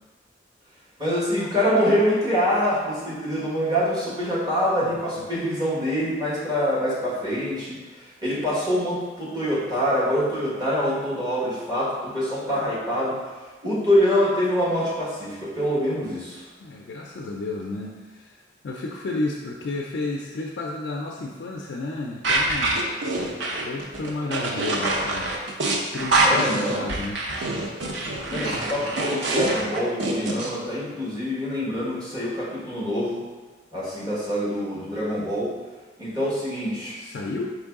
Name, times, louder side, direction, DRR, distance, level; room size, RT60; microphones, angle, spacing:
voice 1, 1.0-7.8 8.2-13.1 13.6-16.4 26.2-26.9 28.3-33.2 33.7-35.5 36.0-36.9, equal, 20° right, -8 dB, 1.4 m, -25 dB
voice 2, 4.8-5.3 16.6-18.4 18.6-22.8 23.6-25.3 25.9-27.2 37.0-37.6, left 2 dB, 65° left, -1 dB, 0.4 m, -32 dB
sound 1, 22.2-30.5, right 2 dB, 90° right, 0.7 m, -25 dB
4.5 x 3.1 x 3.6 m, 1.3 s
head